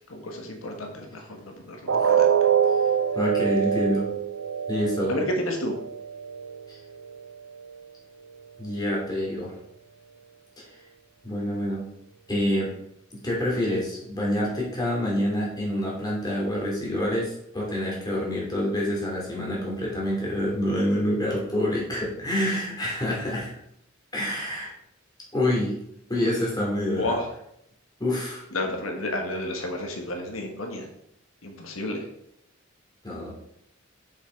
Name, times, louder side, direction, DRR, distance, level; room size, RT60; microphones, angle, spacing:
voice 1, 0.1-2.3 5.1-5.7 26.9-27.3 28.5-30.9 31.4-32.0, left 1 dB, 85° left, 3 dB, 1.5 m, -31 dB
sound 1, 1.9-7.9 8.2-8.4 8.9-9.0, right 8 dB, 70° right, 0.6 m, -25 dB
voice 2, 3.1-4.1 4.7-5.2 6.7-6.8 8.6-9.5 10.6-10.7 11.2-11.8 12.3-12.7 13.2-23.5 24.1-24.7 25.3-25.7 26.1-27.1 28.0-28.4 33.0-33.3, left 1 dB, 20° left, -3 dB, 2.7 m, -27 dB
7.0 x 5.8 x 4.6 m, 0.75 s
head